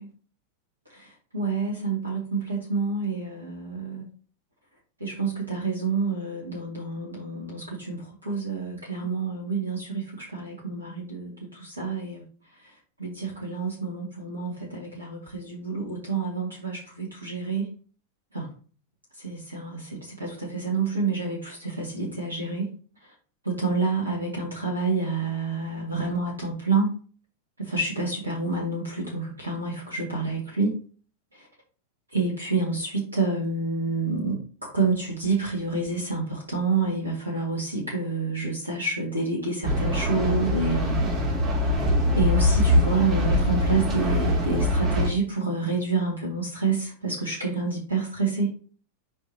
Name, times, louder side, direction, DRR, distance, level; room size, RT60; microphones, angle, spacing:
voice 1, 0.9-4.1 5.0-12.3 12.6-12.7 13.0-17.7 18.3-18.5 19.2-22.7 23.0-23.1 23.4-26.9 27.6-30.8 31.3-31.5 32.1-41.2 41.6-41.7 42.1-48.5, right 4 dB, 80° right, -2 dB, 2.1 m, -28 dB
sound 1, 39.6-45.1, left 1 dB, 30° right, 2.9 m, -23 dB
7.7 x 5.1 x 2.9 m, 0.40 s
figure-of-eight pair, 90°, 0 cm